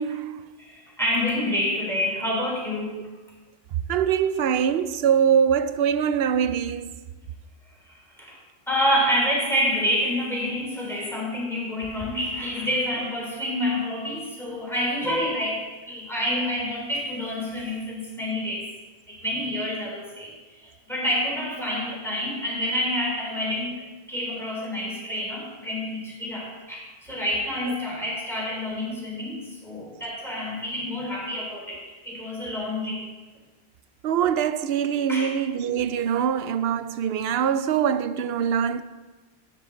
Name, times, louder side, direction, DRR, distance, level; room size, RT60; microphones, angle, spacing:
voice 1, 0.0-0.4 3.9-6.9 34.0-38.8, right 8 dB, 75° right, 0.8 m, -23 dB
voice 2, 0.6-3.1 7.9-8.4 8.7-18.7 19.2-20.3 20.6-33.0 35.1-35.3, left 1 dB, ahead, 3.4 m, -28 dB
12.5 x 7.7 x 3.8 m
omnidirectional pair, 1.1 m